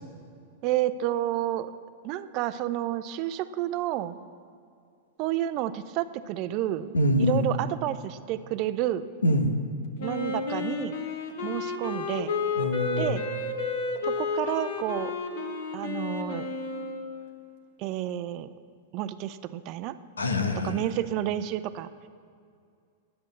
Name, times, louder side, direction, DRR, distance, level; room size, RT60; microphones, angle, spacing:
voice 1, 0.6-1.7 2.0-4.2 5.2-6.9 7.2-9.0 10.0-10.9 11.4-12.3 13.0-13.2 14.1-15.1 15.7-16.5 17.8-18.5 18.9-20.0 20.6-21.9, right 13 dB, 45° right, 13 dB, 0.6 m, -30 dB
voice 2, 6.9-7.5 9.2-9.5 12.6-13.2 20.2-20.8, left 1 dB, 90° left, 6 dB, 1.1 m, -24 dB
Wind instrument woodwind instrument, 10.0-17.1, left 4 dB, 65° left, 1.5 m, -32 dB
10.5 x 8.8 x 6.8 m, 2.4 s
hypercardioid pair, 105°, 0 cm